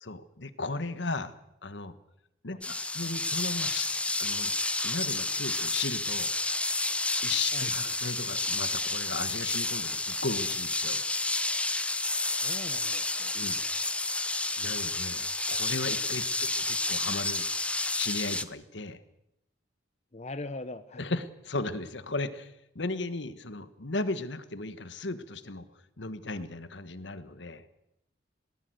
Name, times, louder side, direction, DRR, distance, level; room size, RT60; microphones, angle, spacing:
voice 1, 0.0-1.9 2.4-4.5 4.8-6.3 7.2-11.0 13.3-13.6 14.6-17.5 17.9-19.0 21.0-25.6 26.0-27.6, left 3 dB, 70° left, 12 dB, 1.5 m, -36 dB
sound 1, 2.6-18.4, left 2 dB, 5° left, 0.7 m, -30 dB
voice 2, 12.3-13.3 16.4-16.5 20.1-21.1, left 2 dB, 35° left, 11 dB, 0.9 m, -41 dB
22.0 x 19.0 x 8.0 m, 0.84 s
head